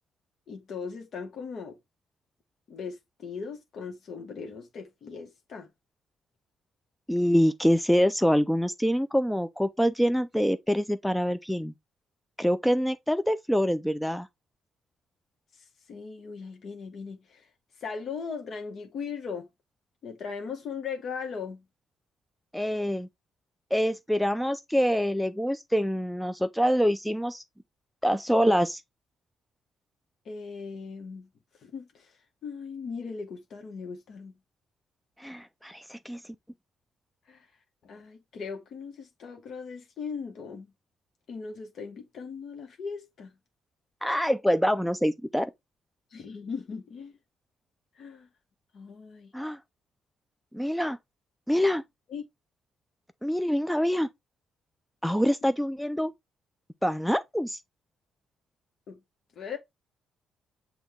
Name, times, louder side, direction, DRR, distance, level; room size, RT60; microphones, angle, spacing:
voice 1, 0.5-1.8 2.7-5.7 15.9-17.5 17.8-19.5 20.0-21.6 30.2-31.3 31.6-32.1 32.4-34.4 37.3-37.5 37.8-40.7 41.3-43.3 46.1-47.1 48.0-48.3 48.7-49.3 52.1-52.2 55.1-55.2 58.9-59.0 59.4-59.6, left 5 dB, 60° left, 0.9 m, -38 dB
voice 2, 7.1-11.7 12.4-14.3 22.5-23.1 23.7-27.4 28.0-28.8 35.2-36.2 44.0-45.5 49.3-49.6 50.5-51.0 51.5-51.8 53.2-54.1 55.0-56.1 56.8-57.6, equal, ahead, 0.3 m, -25 dB
6.2 x 2.3 x 3.4 m
cardioid pair, 90°, 0 cm